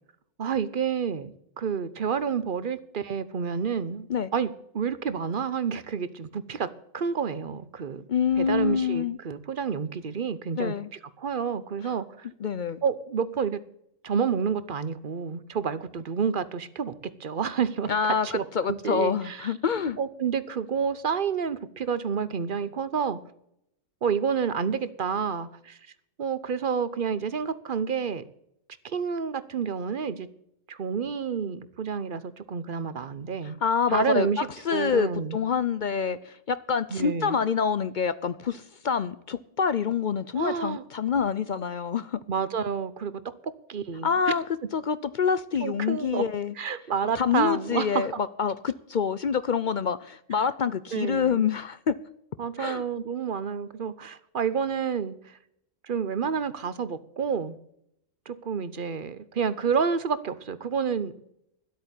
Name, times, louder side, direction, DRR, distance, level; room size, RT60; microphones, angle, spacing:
voice 1, 0.4-6.7 6.9-8.0 8.4-10.7 11.2-12.3 12.8-13.6 14.0-16.9 17.2-17.9 18.2-19.5 20.0-23.2 24.0-25.8 26.2-28.2 28.8-30.3 30.7-33.6 33.9-35.4 36.9-37.4 40.3-40.8 42.3-43.2 43.7-44.1 45.6-46.2 46.6-48.2 50.4-50.5 50.9-51.5 52.4-55.4 55.8-57.5 58.3-61.2, right 6 dB, 45° right, 15 dB, 0.9 m, -29 dB
voice 2, 8.1-9.2 10.6-10.9 12.4-12.8 17.9-20.0 33.6-42.2 44.0-44.4 44.7-46.5 47.1-52.0 52.6-52.8, left 6 dB, 55° left, 15 dB, 0.5 m, -26 dB
12.5 x 8.5 x 8.1 m, 0.74 s
omnidirectional pair, 1.4 m